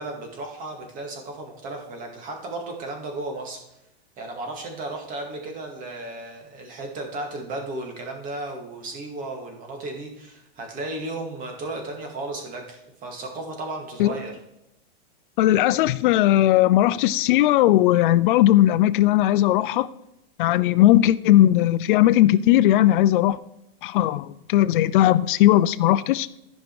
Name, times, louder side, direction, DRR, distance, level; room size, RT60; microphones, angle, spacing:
voice 1, 0.0-3.6 4.2-14.3, right 2 dB, 25° right, 2.1 m, -34 dB
voice 2, 15.4-19.9 20.4-23.4 23.8-26.3, left 14 dB, 55° left, 0.5 m, -18 dB
14.0 x 5.4 x 4.7 m
supercardioid pair, 160°, 30 cm